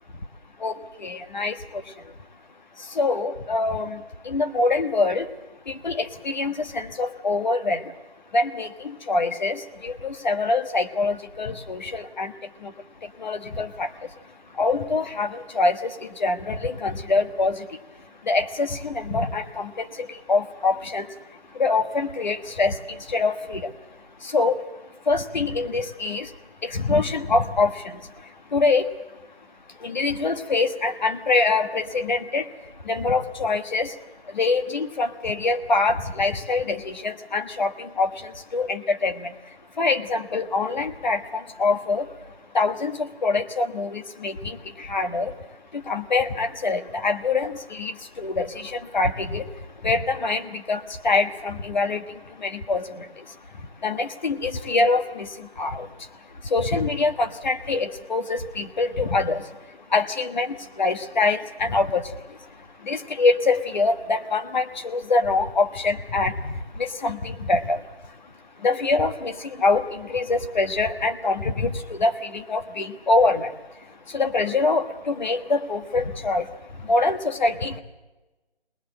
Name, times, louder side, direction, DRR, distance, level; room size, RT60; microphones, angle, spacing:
voice 1, 0.6-2.1 2.8-5.3 5.6-7.9 8.3-14.2 14.5-26.4 26.6-28.9 29.7-34.0 34.2-77.8, left 3 dB, 45° left, 7 dB, 1.4 m, -25 dB
20.5 x 20.0 x 7.7 m, 1.1 s
figure-of-eight pair, 165°, 32 cm